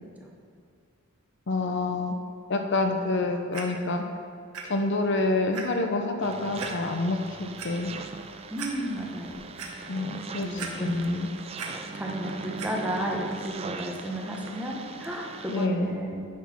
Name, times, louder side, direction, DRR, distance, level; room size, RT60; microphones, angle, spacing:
voice 1, 1.5-2.2 2.5-4.0 4.6-7.9 9.8-11.3 15.5-15.9, left 2 dB, 55° left, 5 dB, 0.6 m, -27 dB
Clock, 3.5-3.6 4.5-4.6 5.1-5.2 5.5-5.6 6.6-6.7 7.4-7.7 8.2-8.3 8.6-8.7 9.2-9.7 10.6-11.1 11.4-11.7 12.6-12.7 13.4-13.5, right 6 dB, 90° right, 1.1 m, -37 dB
sound 1, 6.2-15.7, right 4 dB, 25° right, 0.3 m, -40 dB
voice 2, 8.5-9.5 10.4-11.2 11.7-16.3, right 1 dB, 5° right, -1 dB, 0.9 m, -33 dB
sound 2, 9.8-14.7, right 4 dB, 50° right, 0.9 m, -48 dB
9.3 x 4.3 x 5.9 m, 2.3 s
head